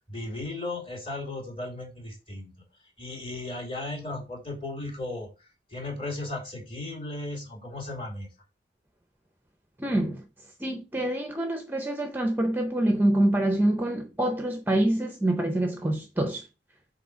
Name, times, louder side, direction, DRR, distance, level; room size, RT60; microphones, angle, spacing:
voice 1, 0.1-2.5 3.0-8.3, left 2 dB, 25° left, 2.5 m, -36 dB
voice 2, 9.8-10.2 10.6-16.4, right 1 dB, 10° right, 0.5 m, -26 dB
6.7 x 4.2 x 4.5 m
head